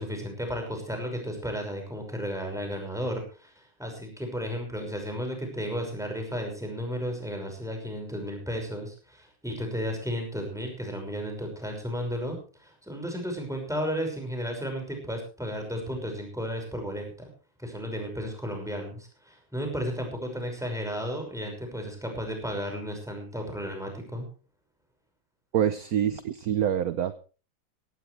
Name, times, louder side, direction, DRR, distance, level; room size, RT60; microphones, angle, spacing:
voice 1, 0.0-17.3 17.6-24.3, equal, ahead, 2 dB, 5.8 m, -33 dB
voice 2, 25.5-27.1, right 9 dB, 60° right, 12 dB, 1.0 m, -26 dB
17.0 x 16.0 x 3.4 m, 0.36 s
omnidirectional pair, 2.3 m